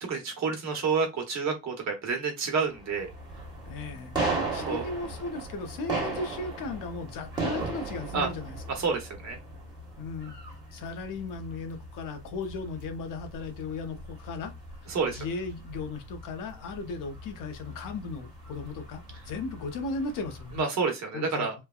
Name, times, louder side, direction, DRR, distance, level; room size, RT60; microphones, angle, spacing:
voice 1, 0.0-3.1 4.6-4.8 8.1-8.3 8.7-9.4 14.9-15.3 20.6-21.5, right 5 dB, 55° right, 1.0 m, -29 dB
sound 1, 2.6-20.6, right 3 dB, 15° right, 1.3 m, -38 dB
voice 2, 3.7-4.2 4.5-8.6 10.0-10.4 10.7-14.5 14.8-20.7 21.1-21.5, left 3 dB, 75° left, 0.8 m, -36 dB
3.2 x 2.2 x 2.3 m
cardioid pair, 140°, 32 cm